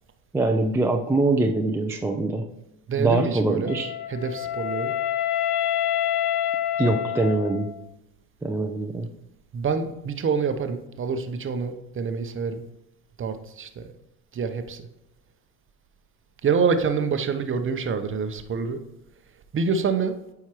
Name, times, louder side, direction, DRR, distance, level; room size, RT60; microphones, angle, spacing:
voice 1, 0.3-2.5 3.0-3.9 6.8-7.7 8.4-9.1, right 2 dB, 5° right, 3 dB, 0.4 m, -23 dB
voice 2, 2.9-3.8 4.1-4.9 9.5-12.6 13.2-13.8 14.3-14.8 16.4-18.8 19.5-20.1, right 5 dB, 30° right, 8 dB, 0.7 m, -26 dB
Wind instrument woodwind instrument, 3.7-7.8, left 10 dB, 70° left, 0.6 m, -27 dB
8.3 x 4.7 x 3.0 m, 0.90 s
hypercardioid pair, 75°, 44 cm